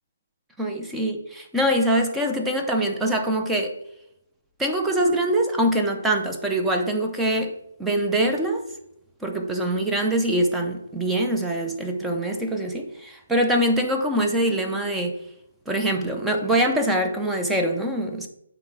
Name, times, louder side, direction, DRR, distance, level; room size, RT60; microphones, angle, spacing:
voice 1, 0.6-3.8 4.6-7.5 7.8-8.7 9.2-15.2 15.7-18.3, right 1 dB, 5° right, 0.5 m, -24 dB
8.7 x 3.6 x 3.2 m
hypercardioid pair, 165°, 0 cm